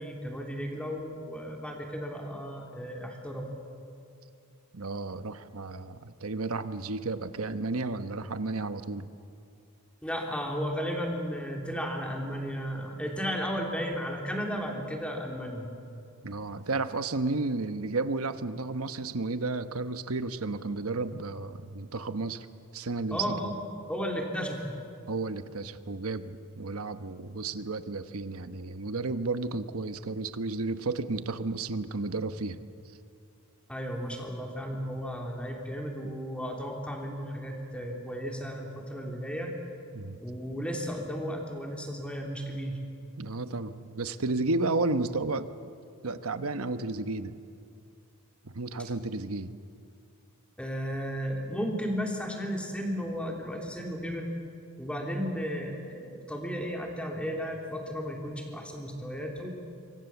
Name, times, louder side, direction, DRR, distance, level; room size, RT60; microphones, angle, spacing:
voice 1, 0.0-3.5 10.0-15.7 23.1-23.6 23.9-24.7 33.7-39.5 40.2-42.8 50.6-54.3 54.8-59.5, equal, 5° left, 0 dB, 3.2 m, -34 dB
voice 2, 4.7-9.1 16.2-22.5 22.7-23.5 25.1-32.6 39.9-40.2 43.2-45.5 46.0-47.4 48.4-49.6, right 3 dB, 75° right, 10 dB, 1.1 m, -32 dB
26.5 x 24.0 x 7.1 m, 2.5 s
head